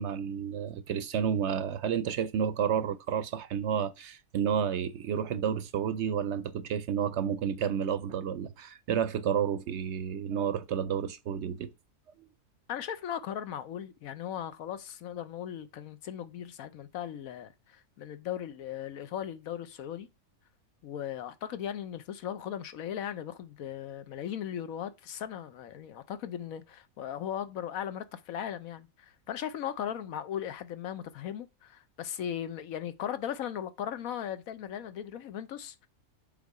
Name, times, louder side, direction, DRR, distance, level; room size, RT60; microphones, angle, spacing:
voice 1, 0.0-11.7 12.2-12.3, right 8 dB, 65° right, 0.8 m, -31 dB
voice 2, 12.7-20.1 20.8-35.9, left 9 dB, 75° left, 1.1 m, -38 dB
7.5 x 3.6 x 4.8 m
omnidirectional pair, 1.5 m